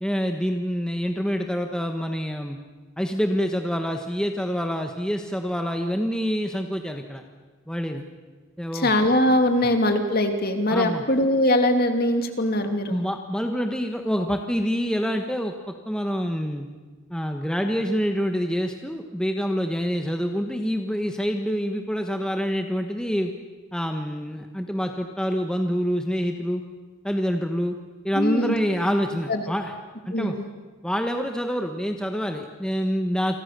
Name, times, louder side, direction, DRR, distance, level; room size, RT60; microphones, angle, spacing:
voice 1, 0.0-2.6 3.0-7.2 7.7-8.0 8.6-8.9 10.7-11.0 12.9-16.7 17.1-23.3 23.7-26.6 27.0-27.8 28.0-29.7 30.1-30.3 30.8-33.4, equal, 5° left, 4 dB, 1.2 m, -26 dB
voice 2, 8.7-13.0 28.1-28.5 29.3-29.4 30.1-30.4, left 1 dB, 45° left, 5 dB, 2.8 m, -22 dB
29.0 x 24.0 x 6.8 m, 1.4 s
head